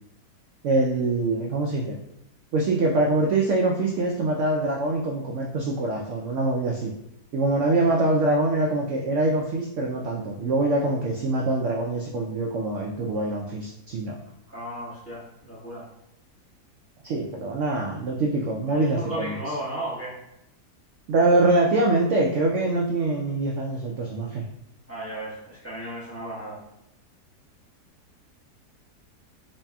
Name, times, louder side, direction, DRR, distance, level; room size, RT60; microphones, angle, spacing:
voice 1, 0.6-2.0 2.5-6.9 7.3-14.2 17.0-19.3 21.1-24.4, right 2 dB, 70° right, -1 dB, 0.7 m, -24 dB
voice 2, 14.5-15.9 18.7-20.2 24.9-26.6, right 1 dB, 10° left, -9 dB, 1.2 m, -34 dB
4.1 x 3.2 x 2.2 m, 0.84 s
omnidirectional pair, 1.7 m